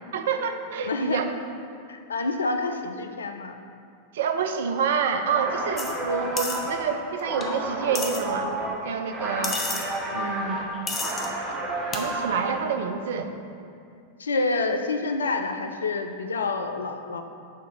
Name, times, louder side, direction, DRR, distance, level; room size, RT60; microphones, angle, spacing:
voice 1, 0.1-1.3 4.1-8.5 8.8-9.6 10.1-10.6 10.8-11.0 11.9-13.3, right 6 dB, 60° right, 7 dB, 0.5 m, -27 dB
voice 2, 0.8-1.2 1.9-3.6 10.1-10.3 14.2-17.2, left 3 dB, 70° left, 7 dB, 0.4 m, -28 dB
sound 1, 5.2-12.7, right 1 dB, 20° right, 1.1 m, -31 dB
sound 2, 5.8-5.9 6.4-6.6 7.4-7.5 7.9-8.2 9.4-9.9 10.9-11.3 11.9-12.0, left 4 dB, 20° left, 0.7 m, -30 dB
6.5 x 4.0 x 4.8 m, 2.4 s
figure-of-eight pair, 90°, 0 cm